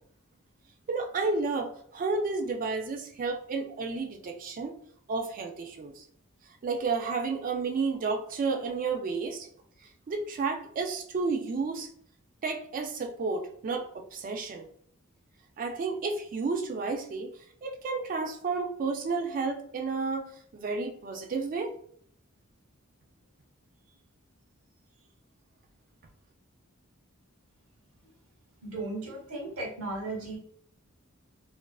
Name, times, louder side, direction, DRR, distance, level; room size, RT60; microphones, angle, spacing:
voice 1, 0.9-4.8 5.1-6.0 6.6-9.5 10.1-11.9 12.4-14.7 15.6-17.3 17.6-21.7, right 4 dB, 40° right, 4 dB, 0.3 m, -31 dB
voice 2, 28.6-30.4, right 2 dB, 80° right, -2 dB, 0.9 m, -36 dB
2.4 x 2.3 x 2.3 m, 0.62 s
head